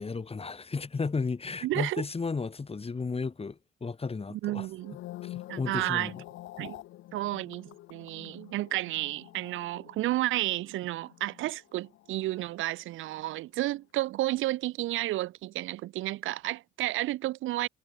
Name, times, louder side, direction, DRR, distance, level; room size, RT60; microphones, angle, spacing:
voice 1, 0.0-4.7 5.2-6.1, left 4 dB, 30° left, 4.8 m, -34 dB
voice 2, 1.6-2.0 4.3-5.0 5.5-6.1 6.6-6.8 7.1-17.7, right 16 dB, 80° right, 0.6 m, -32 dB
sound 1, 4.7-13.1 13.4-13.7, left 16 dB, 90° left, 2.8 m, -47 dB
cardioid pair, 90°, 20 cm